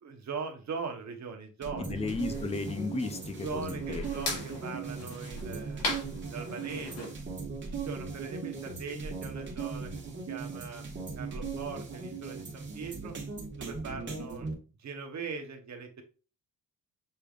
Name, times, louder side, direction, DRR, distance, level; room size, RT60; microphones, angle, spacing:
voice 1, 0.0-2.0 3.4-7.1 7.7-9.9 10.3-10.8 11.2-13.1 13.6-14.5 14.8-16.0, right 5 dB, 45° right, 1.1 m, -40 dB
sound 1, 1.6-14.5, right 4 dB, 30° right, 1.5 m, -38 dB
voice 2, 1.8-4.0 4.3-4.4, left 3 dB, 15° left, 0.5 m, -34 dB
sound 2, 1.9-7.1, left 2 dB, 80° left, 2.2 m, -40 dB
6.7 x 3.3 x 2.4 m
cardioid pair, 150°, 38 cm